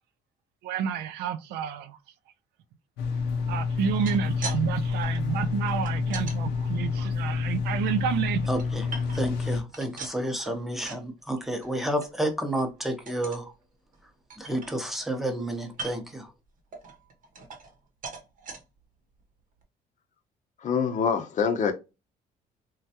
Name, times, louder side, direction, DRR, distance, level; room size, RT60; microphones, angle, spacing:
voice 1, 0.6-2.0 3.5-8.4, right 8 dB, 85° right, 0.4 m, -30 dB
sound 1, 3.0-9.6, left 5 dB, 90° left, 0.7 m, -28 dB
sound 2, 3.8-4.6 4.9-6.4 6.9-7.9 8.4-9.4 9.7-11.1 11.4-11.7 12.0-12.1 12.5-12.7 13.1-13.5 13.9-14.0 14.3-15.1 15.7-16.2 16.7-17.8 18.0-18.6 19.2-19.3 19.6-19.7, right 4 dB, 50° right, 0.9 m, -41 dB
voice 2, 8.5-13.5 14.4-16.3, right 1 dB, ahead, 0.7 m, -30 dB
voice 3, 20.6-21.7, left 6 dB, 50° left, 0.6 m, -25 dB
3.1 x 2.2 x 2.7 m
cardioid pair, 110°, 17 cm